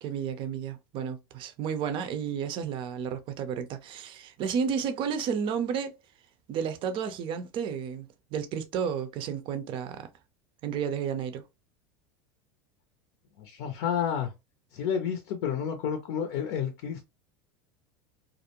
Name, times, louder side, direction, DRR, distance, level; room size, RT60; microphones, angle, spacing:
voice 1, 0.0-5.9 6.5-10.1 10.6-11.4, right 7 dB, 45° right, 0.5 m, -32 dB
voice 2, 13.4-14.3 14.7-17.1, left 8 dB, 65° left, 0.5 m, -30 dB
2.4 x 2.1 x 2.8 m
hypercardioid pair, 95°, 12 cm